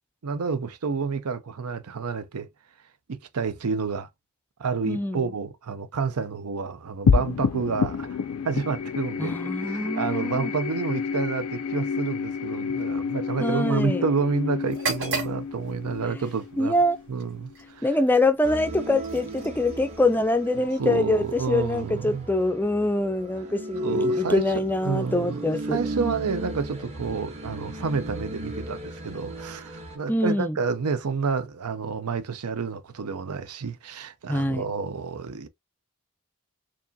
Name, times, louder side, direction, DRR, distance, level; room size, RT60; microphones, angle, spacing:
voice 1, 0.2-2.5 3.1-4.1 4.6-8.2 8.4-16.7 17.1-17.9 20.8-22.3 23.8-25.4 25.7-35.5, right 5 dB, 80° right, 0.6 m, -29 dB
voice 2, 4.9-5.3 9.2-10.5 13.4-14.0 16.6-17.0 17.8-25.8 30.1-30.6 34.3-34.6, left 2 dB, 10° left, 0.4 m, -24 dB
sound 1, 7.1-17.7, left 6 dB, 75° left, 0.4 m, -29 dB
sound 2, 14.7-22.5, right 4 dB, 55° right, 2.0 m, -39 dB
sound 3, 18.4-30.0, equal, 30° right, 0.8 m, -35 dB
4.6 x 2.9 x 2.7 m
head